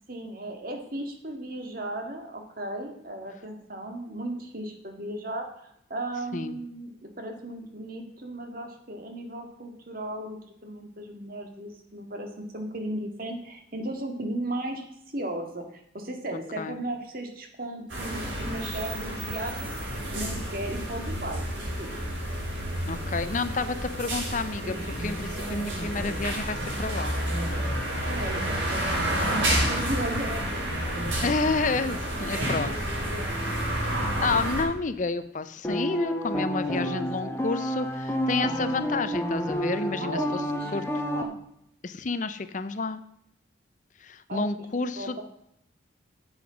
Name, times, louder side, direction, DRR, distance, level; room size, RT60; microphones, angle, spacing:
voice 1, 0.1-21.9 28.0-28.8 29.1-30.9 32.2-33.4 36.8-37.4 40.0-41.4 44.3-44.5 45.0-45.2, right 1 dB, 50° right, 4 dB, 1.9 m, -36 dB
sound 1, 17.9-34.6, right 1 dB, 85° right, 5.3 m, -30 dB
voice 2, 22.9-27.1 31.2-32.7 34.2-40.4 40.7-40.8 41.8-43.0 44.0-45.2, left 3 dB, 40° left, 12 dB, 0.5 m, -30 dB
sound 2, 35.6-41.2, equal, 15° left, 1.1 m, -29 dB
9.7 x 7.9 x 6.1 m, 0.76 s
head